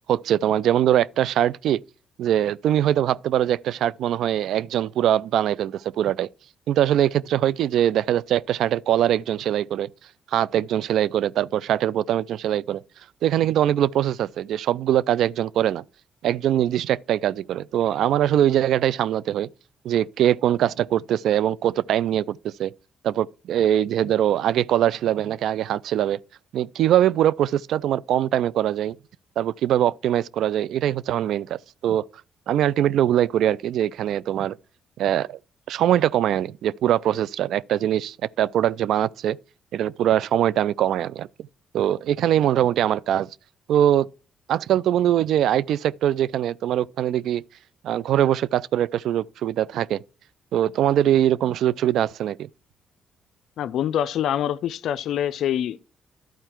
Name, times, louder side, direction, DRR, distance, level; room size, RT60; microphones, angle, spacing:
voice 1, 0.1-1.8 2.2-6.3 6.7-9.9 10.3-12.8 13.2-15.8 16.2-19.5 19.8-22.7 23.0-26.2 26.5-28.9 29.4-32.0 32.5-34.6 35.0-35.4 35.7-39.4 39.7-41.3 41.7-43.3 43.7-44.1 44.5-47.4 47.8-50.0 50.5-52.5, right 11 dB, 75° right, 0.3 m, -22 dB
voice 2, 53.6-55.8, left 10 dB, 75° left, 0.4 m, -25 dB
12.0 x 4.5 x 4.4 m
cardioid pair, 90°, 0 cm